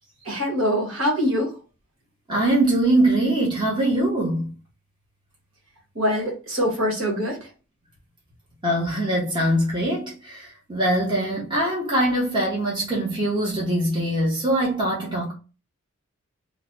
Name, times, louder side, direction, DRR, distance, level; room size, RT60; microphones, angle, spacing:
voice 1, 0.2-1.6 5.9-7.5, equal, 65° right, 1.4 m, -24 dB
voice 2, 2.3-4.5 8.6-15.3, right 1 dB, 20° right, 0.9 m, -22 dB
3.2 x 2.1 x 3.9 m
head